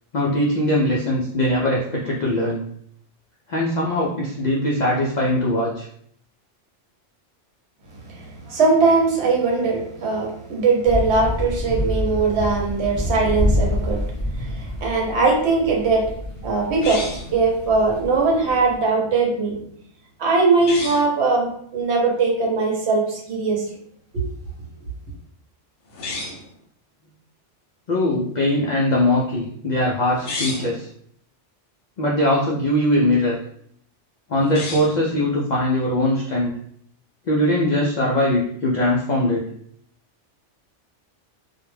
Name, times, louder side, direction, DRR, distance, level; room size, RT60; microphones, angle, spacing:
voice 1, 0.1-2.7 3.5-5.9 27.9-30.9 32.0-33.4 34.3-36.5 37.3-39.4, left 1 dB, 65° left, -4 dB, 0.4 m, -21 dB
voice 2, 8.1-14.0 14.3-16.1 16.4-19.6 20.2-23.6 24.1-24.2, right 3 dB, 65° right, -1 dB, 1.0 m, -20 dB
sound 1, 10.8-18.8, left 1 dB, 20° left, 0.6 m, -27 dB
sound 2, 16.8-17.4 20.5-21.1 25.9-26.5 30.1-30.8 34.4-35.0, left 3 dB, 80° left, 0.9 m, -31 dB
2.3 x 2.1 x 3.1 m, 0.66 s
omnidirectional pair, 1.2 m